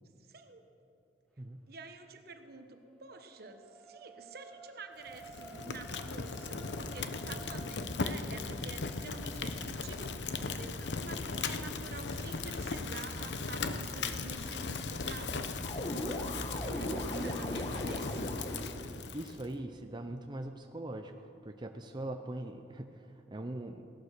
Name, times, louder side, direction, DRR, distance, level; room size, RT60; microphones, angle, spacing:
voice 1, 0.3-0.7 1.7-15.5 16.6-18.3, right 3 dB, 60° right, 7 dB, 1.2 m, -48 dB
sound 1, 2.3-14.8 15.3-15.4, right 2 dB, 5° left, 1.3 m, -56 dB
Fire, 5.1-19.5, left 4 dB, 85° left, 0.9 m, -38 dB
sound 2, 15.6-18.8, left 1 dB, 30° left, 1.2 m, -37 dB
voice 2, 16.7-17.2 19.1-23.9, right 1 dB, 25° right, 5 dB, 0.6 m, -42 dB
17.5 x 12.0 x 6.6 m, 2.6 s
head